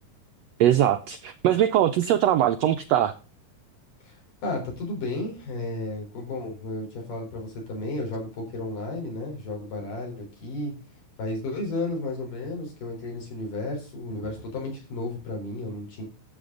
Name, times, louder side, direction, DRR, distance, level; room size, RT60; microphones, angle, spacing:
voice 1, 0.6-3.1, right 11 dB, 85° right, 9 dB, 1.4 m, -21 dB
voice 2, 4.0-10.7 11.2-16.0, left 2 dB, 85° left, 0 dB, 5.6 m, -33 dB
13.0 x 7.3 x 3.9 m, 0.35 s
omnidirectional pair, 3.7 m